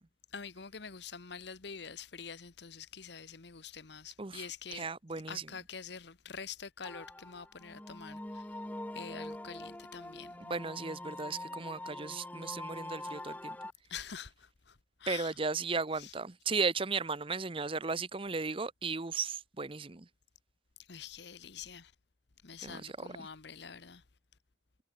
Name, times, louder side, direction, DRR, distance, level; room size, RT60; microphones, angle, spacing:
voice 1, 0.3-4.9 5.1-8.4 8.9-10.4 13.9-15.3 16.0-16.1 20.9-21.9 22.4-24.0, left 6 dB, 60° left, 1.0 m, -46 dB
voice 2, 4.7-5.5 10.4-13.6 15.1-20.0 22.6-22.9 23.2-23.3, right 4 dB, 25° right, 0.7 m, -35 dB
sound 1, 6.8-13.7, left 1 dB, 10° left, 0.8 m, -44 dB
head